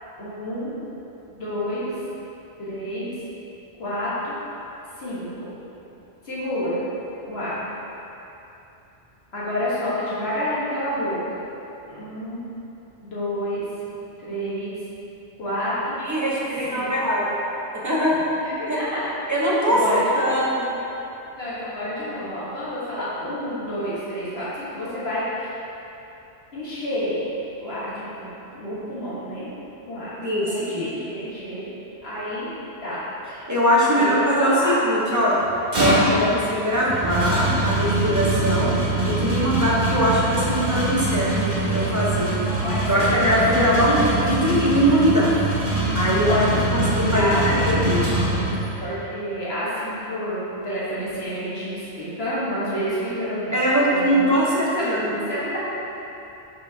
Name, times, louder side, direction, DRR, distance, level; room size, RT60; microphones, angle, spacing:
voice 1, 0.2-0.7 1.3-1.9 2.6-3.1 3.8-4.3 5.0-5.5 6.2-6.8 7.2-7.5 9.3-11.4 11.9-12.4 13.0-13.6 14.2-14.7 15.4-16.0 16.7-16.9 18.4-19.0 19.7-20.3 21.3-25.6 26.5-27.3 27.6-29.5 29.9-31.7 32.0-32.5 32.8-33.0 33.9-34.8 36.2-36.4 42.4-43.4 46.3-48.3 48.8-53.5 53.9-54.2 54.8-55.6, left 1 dB, 65° left, -10 dB, 1.6 m, -29 dB
voice 2, 16.0-17.4 17.7-18.2 18.7-18.8 19.3-20.7 30.2-30.9 33.5-35.4 35.8-38.7 39.0-42.3 42.9-45.4 45.9-46.5 46.7-47.5 47.9-48.0 53.5-55.2, equal, 20° right, -7 dB, 0.8 m, -21 dB
Bread Slicer Bakery Equipment Metal Rattle, 35.4-48.9, right 2 dB, 50° right, 1.6 m, -24 dB
6.1 x 5.9 x 2.8 m, 3.0 s
omnidirectional pair, 1.2 m